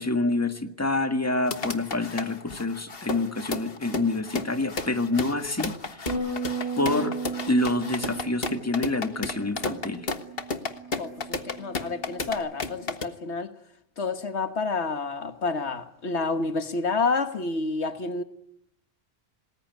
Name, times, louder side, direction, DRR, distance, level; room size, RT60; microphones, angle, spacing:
voice 1, 0.0-6.1 6.8-7.1 7.5-10.0, left 2 dB, 15° left, 1.7 m, -27 dB
sound 1, 1.5-13.0, left 4 dB, 60° left, 1.6 m, -33 dB
Bass guitar, 6.1-12.3, right 4 dB, 55° right, 4.9 m, -36 dB
voice 2, 11.0-13.5 14.0-18.2, left 3 dB, 75° left, 1.7 m, -29 dB
28.0 x 20.0 x 9.3 m
omnidirectional pair, 1.1 m